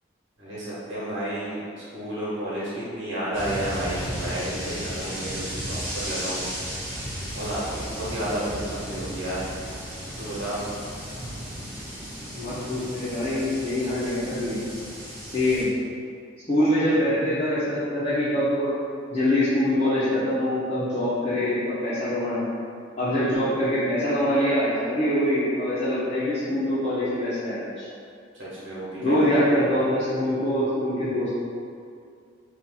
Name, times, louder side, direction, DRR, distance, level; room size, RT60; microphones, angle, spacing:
voice 1, 0.4-1.6 1.9-6.4 7.3-9.5 10.2-10.6 28.4-29.6, right 1 dB, 85° right, -9 dB, 1.3 m, -31 dB
sound 1, 3.3-15.6, equal, 10° right, 1.2 m, -35 dB
voice 2, 12.3-14.6 15.2-15.7 16.5-18.8 19.1-22.5 23.0-27.9 29.0-31.3, left 1 dB, 30° left, -12 dB, 0.7 m, -24 dB
2.8 x 2.5 x 3.7 m, 2.4 s
head